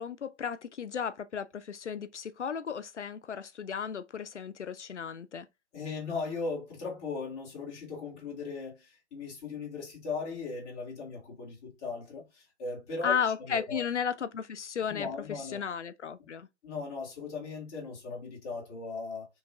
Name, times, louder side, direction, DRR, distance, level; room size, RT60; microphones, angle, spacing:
voice 1, 0.0-5.5 13.0-16.5, left 7 dB, 85° left, 0.5 m, -34 dB
voice 2, 5.7-13.9 14.9-15.6 16.6-19.3, left 4 dB, 15° left, 0.8 m, -38 dB
3.0 x 2.2 x 3.7 m
figure-of-eight pair, 135°, 34 cm